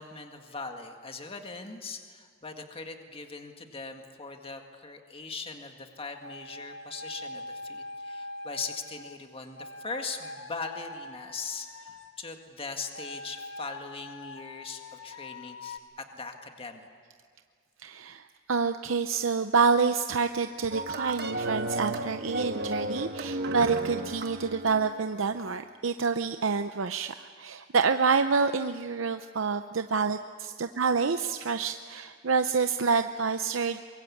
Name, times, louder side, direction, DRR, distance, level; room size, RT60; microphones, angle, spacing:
voice 1, 0.0-16.9, left 4 dB, 30° left, 4 dB, 1.9 m, -40 dB
sound 1, 6.2-9.1 9.5-12.2 12.9-15.8, left 2 dB, 75° left, 1.6 m, -43 dB
voice 2, 17.8-33.8, right 5 dB, 80° right, 8 dB, 0.7 m, -27 dB
sound 2, 20.7-25.1, right 2 dB, 55° right, 1.4 m, -33 dB
24.0 x 22.5 x 8.5 m, 2.1 s
head